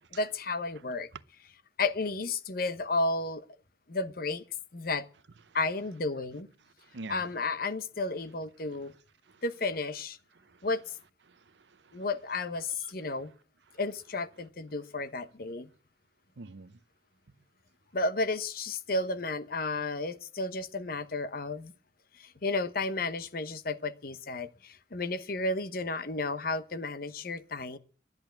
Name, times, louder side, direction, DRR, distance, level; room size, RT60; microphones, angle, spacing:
voice 1, 0.1-1.1 1.8-3.5 3.9-4.4 4.7-5.1 5.5-6.5 7.1-8.9 9.4-10.2 10.6-10.8 11.9-13.3 13.8-15.7 17.9-21.7 22.2-27.8, left 3 dB, 55° left, 0.9 m, -32 dB
voice 2, 6.8-7.2 9.3-9.4 10.3-10.7 11.3-12.0 13.7-13.8 16.4-16.8, right 3 dB, 75° right, 0.7 m, -47 dB
10.5 x 10.5 x 9.0 m
head